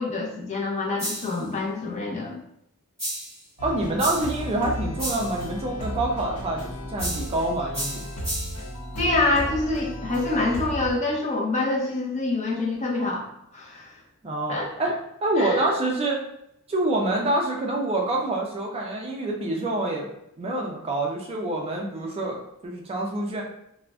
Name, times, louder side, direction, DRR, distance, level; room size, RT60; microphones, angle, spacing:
voice 1, 0.0-2.4 9.0-13.3 13.5-14.0 14.5-14.9 15.4-15.7, left 2 dB, 30° left, -2 dB, 0.6 m, -26 dB
sound 1, 1.0-1.4 3.0-3.4 4.0-4.4 5.0-5.4 7.0-7.4 7.7-8.7, equal, 5° left, 1.2 m, -32 dB
sound 2, 3.6-10.9, equal, 85° left, 0.6 m, -34 dB
voice 2, 3.6-8.1 14.2-14.9 15.2-16.2 16.7-20.1 20.4-23.4, right 2 dB, 25° right, 0 dB, 0.4 m, -26 dB
2.4 x 2.0 x 3.4 m, 0.79 s
head